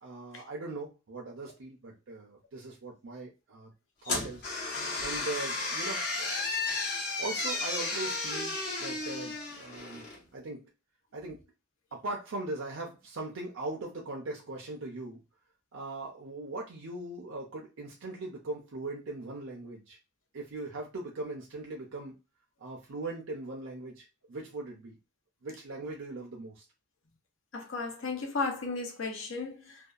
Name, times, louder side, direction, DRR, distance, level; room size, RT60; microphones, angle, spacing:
voice 1, 0.0-3.7 4.0-4.4 5.0-6.5 7.2-10.0 10.3-10.6 11.1-11.4 11.9-15.2 15.7-20.0 20.3-22.1 22.6-25.0 25.4-26.6, right 2 dB, 80° right, 0.5 m, -40 dB
sound 1, 4.0-10.2, left 3 dB, 55° left, 1.0 m, -33 dB
voice 2, 27.5-29.8, left 4 dB, 80° left, 0.7 m, -34 dB
2.7 x 2.2 x 2.3 m
head